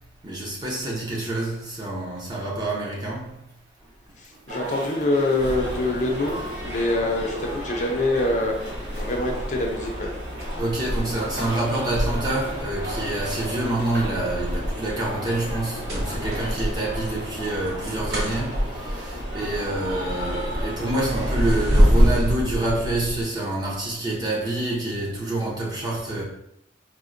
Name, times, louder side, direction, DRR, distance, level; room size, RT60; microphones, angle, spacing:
voice 1, 0.2-3.4 10.6-26.2, right 2 dB, 20° right, 0.7 m, -27 dB
voice 2, 4.2-6.4 6.6-8.5 8.9-10.1, left 2 dB, 40° left, 0.4 m, -25 dB
sound 1, 4.5-22.1, equal, 75° right, 1.1 m, -35 dB
sound 2, 5.4-23.2, equal, 60° right, 0.9 m, -27 dB
4.3 x 2.1 x 2.5 m
head